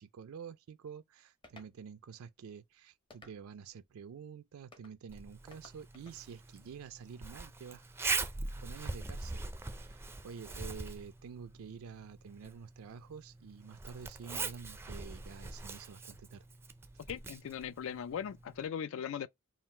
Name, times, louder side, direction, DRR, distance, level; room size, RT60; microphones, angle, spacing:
voice 1, 0.0-7.8 8.6-16.4, right 6 dB, 80° right, 0.4 m, -49 dB
sound 1, 1.4-1.7 3.1-3.7 4.7-5.0 5.5-6.2, left 2 dB, 25° left, 0.7 m, -57 dB
Zipper (clothing), 5.1-18.6, right 3 dB, 10° right, 0.4 m, -42 dB
voice 2, 17.1-19.3, left 8 dB, 65° left, 0.3 m, -39 dB
3.7 x 2.4 x 4.3 m
head